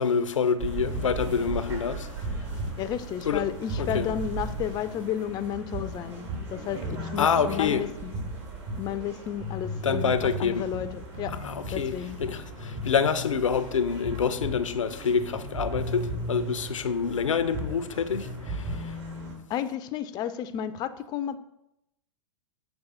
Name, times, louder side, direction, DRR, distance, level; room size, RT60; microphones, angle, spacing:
voice 1, 0.0-2.1 3.2-3.4 3.8-4.1 7.2-7.8 9.8-10.7 11.4-19.0, left 6 dB, 85° left, 0.5 m, -27 dB
sound 1, 0.6-19.3, right 1 dB, 60° right, 2.6 m, -36 dB
voice 2, 2.8-8.1 8.8-11.4 11.7-12.2 19.5-21.4, left 10 dB, 25° left, 0.4 m, -32 dB
7.1 x 3.2 x 5.4 m
hypercardioid pair, 105°, 16 cm